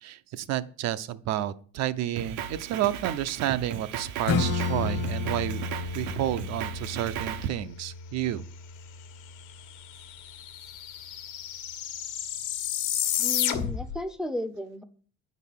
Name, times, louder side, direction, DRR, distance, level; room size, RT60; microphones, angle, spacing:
voice 1, 0.0-5.6 5.9-8.4, right 12 dB, 65° right, 13 dB, 0.6 m, -30 dB
Drum kit, 2.2-7.5, right 9 dB, 90° right, 1.0 m, -36 dB
Acoustic guitar / Strum, 4.2-9.5, left 4 dB, 55° left, 1.3 m, -32 dB
sound 1, 9.5-9.6 9.8-14.0, left 10 dB, 85° left, 1.3 m, -31 dB
voice 2, 13.2-14.8, left 1 dB, ahead, 7 dB, 0.5 m, -34 dB
9.1 x 4.1 x 7.1 m, 0.43 s
cardioid pair, 165°, 29 cm